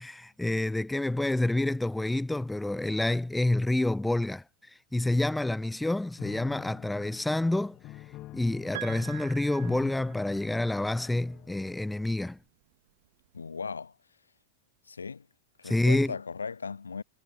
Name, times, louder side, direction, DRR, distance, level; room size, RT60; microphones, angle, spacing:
voice 1, 0.0-7.8 8.3-12.4 15.6-16.1, left 2 dB, 5° left, 0.3 m, -28 dB
Piano, 6.2-12.1, left 16 dB, 35° left, 1.4 m, -47 dB
Piano 2, 8.7-10.7 12.0-12.1, right 15 dB, 55° right, 1.3 m, -43 dB
voice 2, 13.3-14.0 14.9-15.3 15.6-17.0, left 5 dB, 75° left, 1.0 m, -37 dB
figure-of-eight pair, 90°, 0 cm